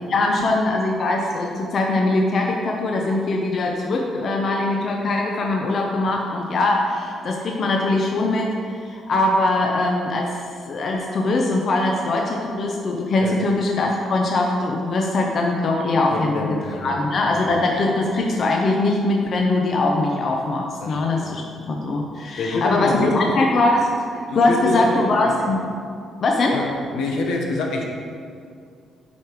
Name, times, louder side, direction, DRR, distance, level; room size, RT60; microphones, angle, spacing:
voice 1, 0.1-10.4 10.7-21.4 21.7-25.6 26.2-26.6, left 2 dB, 55° left, 0 dB, 0.8 m, -21 dB
voice 2, 16.1-17.0 17.3-17.6 20.8-21.3 22.4-23.3 24.3-24.9 25.2-25.4 26.5-26.7 26.9-27.9, left 3 dB, 85° left, 0 dB, 1.2 m, -26 dB
8.3 x 4.9 x 4.7 m, 2.3 s
cardioid pair, 90°, 0 cm